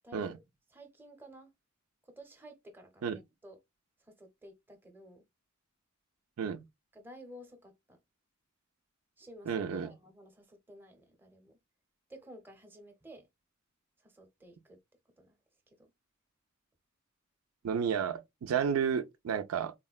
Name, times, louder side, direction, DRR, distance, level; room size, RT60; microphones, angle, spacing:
voice 1, 0.0-0.3 0.7-1.5 2.1-3.6 4.1-5.2 6.9-8.0 9.2-11.6 12.1-13.3 14.0-14.8 15.2-15.3 15.8-15.9, equal, 10° right, 0.7 m, -53 dB
voice 2, 9.5-9.9 17.6-19.7, right 7 dB, 85° right, 0.4 m, -31 dB
3.6 x 2.1 x 2.3 m
head